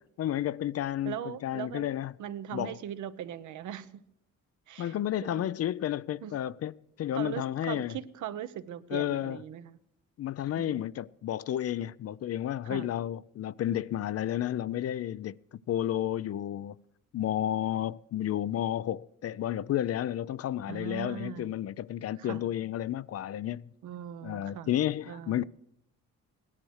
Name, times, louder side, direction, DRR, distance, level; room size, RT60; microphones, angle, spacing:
voice 1, 0.2-2.1 2.5-2.8 4.8-6.7 7.0-8.0 8.9-9.4 10.2-15.4 15.7-16.8 17.1-23.7 24.2-25.4, left 11 dB, 55° left, 0.5 m, -31 dB
voice 2, 1.0-4.0 4.7-5.0 5.2-5.5 6.2-6.3 7.1-9.8 10.6-10.8 12.6-12.9 20.7-21.5 22.2-22.4 23.8-24.7 25.1-25.4, right 10 dB, 75° right, 0.9 m, -40 dB
16.5 x 11.0 x 6.4 m
cardioid pair, 90°, 30 cm